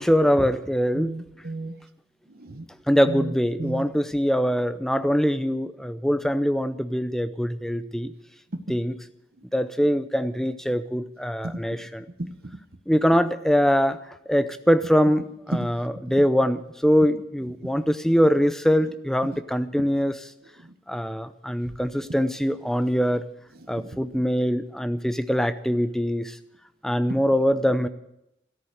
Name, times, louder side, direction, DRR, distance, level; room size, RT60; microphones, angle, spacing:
voice 1, 0.0-1.1 2.9-8.1 8.7-9.0 9.5-12.0 12.9-20.3 20.9-23.2 23.7-26.4 26.8-27.9, equal, 5° left, 12 dB, 0.6 m, -23 dB
voice 2, 0.9-1.7 2.3-2.7 3.1-3.3 3.6-3.9 8.5-8.8 11.4-11.6 12.2-12.6 15.5-15.7 19.8-19.9 20.6-20.7 23.7-24.0 27.1-27.2, right 2 dB, 55° right, 11 dB, 1.0 m, -33 dB
14.0 x 13.0 x 6.6 m, 0.83 s
head